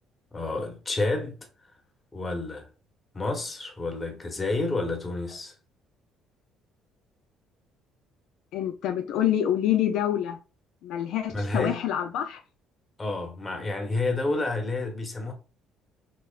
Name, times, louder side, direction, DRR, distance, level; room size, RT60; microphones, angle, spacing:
voice 1, 0.3-1.4 2.1-2.7 3.1-5.5 11.3-11.8 13.0-15.3, left 2 dB, 20° left, 1.2 m, -29 dB
voice 2, 8.5-10.4 10.8-12.4, left 10 dB, 75° left, 0.5 m, -26 dB
6.0 x 2.1 x 2.4 m
cardioid pair, 105°, 0 cm